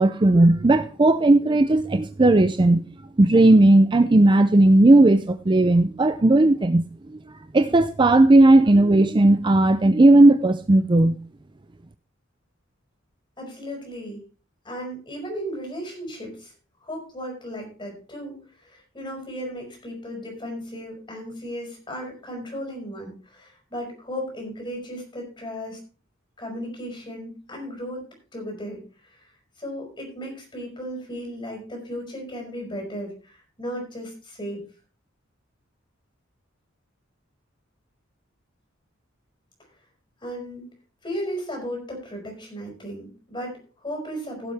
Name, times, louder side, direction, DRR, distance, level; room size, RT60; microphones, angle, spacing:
voice 1, 0.0-2.8 3.2-6.8 7.5-11.2, right 2 dB, 25° right, 10 dB, 0.5 m, -16 dB
voice 2, 13.4-14.2 14.6-16.5 16.8-25.8 26.4-28.1 28.3-29.3 29.6-34.6 40.2-40.6 41.0-44.5, equal, 25° left, 1 dB, 5.6 m, -35 dB
16.0 x 7.4 x 3.4 m, 0.37 s
head